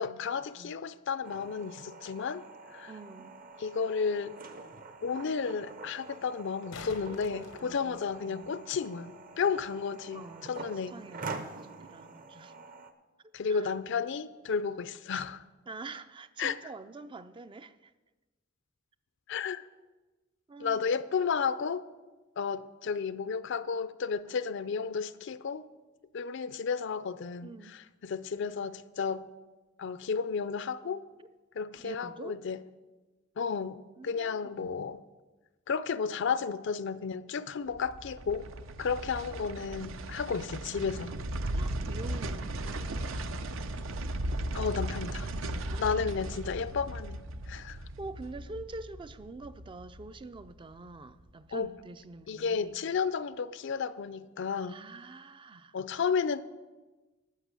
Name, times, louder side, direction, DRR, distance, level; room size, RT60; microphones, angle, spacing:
voice 1, 0.0-2.4 2.7-2.9 3.6-4.3 5.0-10.9 13.3-15.4 16.4-16.6 19.3-19.6 20.6-21.8 22.4-25.6 26.1-27.5 28.0-29.3 29.8-31.1 31.6-32.6 33.4-35.0 35.7-38.5 38.8-41.1 44.5-45.3 45.8-47.2 47.5-47.8 51.5-51.7 52.3-54.8 55.7-56.4, left 5 dB, 65° left, 0.5 m, -32 dB
sound 1, 1.2-12.9, right 3 dB, 45° right, 0.8 m, -46 dB
voice 2, 2.9-3.4 7.3-8.5 10.1-12.5 13.5-13.7 15.7-17.9 20.5-20.8 27.4-27.8 31.2-31.3 31.8-32.4 34.0-34.7 41.5-43.3 45.7-46.0 46.3-46.4 48.0-52.8 54.6-55.8, right 3 dB, 25° right, 0.4 m, -46 dB
sound 2, 3.5-3.6 6.3-8.5 11.4-11.5, left 4 dB, 90° left, 0.9 m, -48 dB
sound 3, 37.7-50.9 51.2-51.3, right 1 dB, 75° right, 0.7 m, -37 dB
12.0 x 5.8 x 8.2 m
head